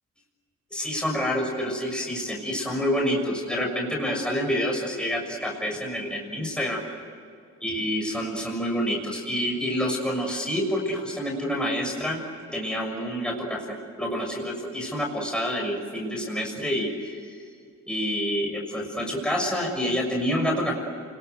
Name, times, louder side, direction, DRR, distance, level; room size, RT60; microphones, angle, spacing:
voice 1, 0.7-6.8 7.6-12.2 12.5-17.4 17.9-20.7, equal, 5° left, 0 dB, 6.5 m, -28 dB
29.0 x 21.5 x 8.1 m, 2.4 s
cardioid pair, 90°, 30 cm